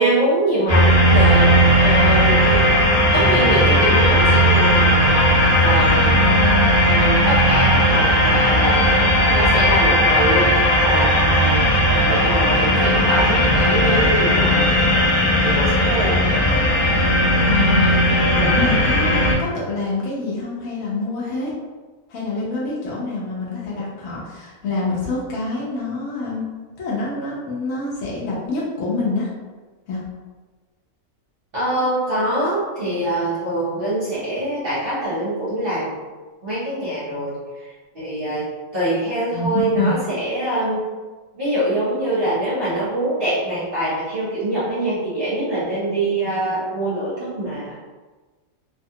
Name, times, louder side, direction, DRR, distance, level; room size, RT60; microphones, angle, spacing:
voice 1, 0.0-1.5 1.8-2.6 3.1-5.0 5.6-6.2 6.8-10.5 10.8-16.2 31.5-36.0 36.4-37.3 37.9-38.4 38.7-40.8 41.4-47.8, right 1 dB, 45° right, -11 dB, 0.9 m, -24 dB
sound 1, 0.7-19.3, equal, 40° left, 0.8 m, -16 dB
voice 2, 17.5-21.5 22.1-26.5 26.8-29.3 29.9-30.0 39.3-39.9, left 3 dB, 70° left, -6 dB, 1.0 m, -26 dB
2.7 x 2.2 x 2.7 m, 1.3 s
omnidirectional pair, 1.5 m